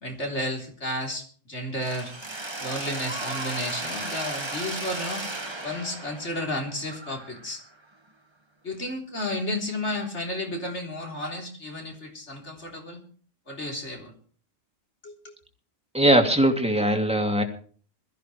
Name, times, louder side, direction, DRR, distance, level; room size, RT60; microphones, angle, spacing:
voice 1, 0.0-2.1 2.6-5.2 5.6-7.6 8.6-13.0 13.5-14.1 15.0-15.3, left 1 dB, 65° left, 1 dB, 4.0 m, -32 dB
Mechanisms, 1.8-7.7, right 2 dB, 20° right, 1.6 m, -35 dB
voice 2, 15.9-17.4, right 1 dB, 5° right, 3 dB, 2.6 m, -20 dB
22.0 x 14.0 x 3.3 m, 0.43 s
omnidirectional pair, 1.3 m